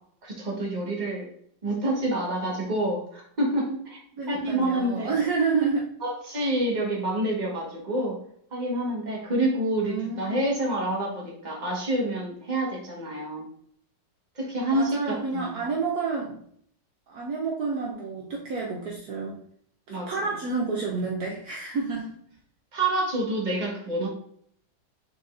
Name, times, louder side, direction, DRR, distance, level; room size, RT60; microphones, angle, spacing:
voice 1, 0.2-1.3 1.6-4.0 4.3-5.1 6.0-8.2 8.5-13.5 14.3-15.7 19.9-20.3 22.7-24.1, right 1 dB, 25° right, -3 dB, 1.3 m, -28 dB
voice 2, 4.2-5.9 9.8-10.4 14.7-16.4 17.1-19.4 19.9-22.1, right 4 dB, 65° right, -1 dB, 1.1 m, -29 dB
5.4 x 3.9 x 2.5 m, 0.64 s
omnidirectional pair, 1.9 m